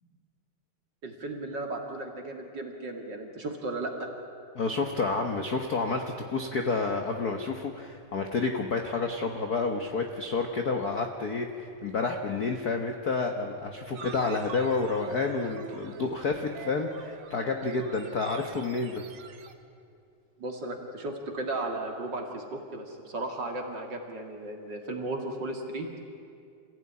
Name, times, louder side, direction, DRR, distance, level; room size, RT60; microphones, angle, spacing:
voice 1, 1.0-4.1 20.4-25.9, right 2 dB, 40° right, 2 dB, 2.6 m, -35 dB
voice 2, 4.5-19.0, left 4 dB, 55° left, 4 dB, 1.0 m, -29 dB
sound 1, 13.9-19.5, right 6 dB, 55° right, 1.6 m, -46 dB
27.0 x 16.5 x 9.7 m, 2.4 s
omnidirectional pair, 3.5 m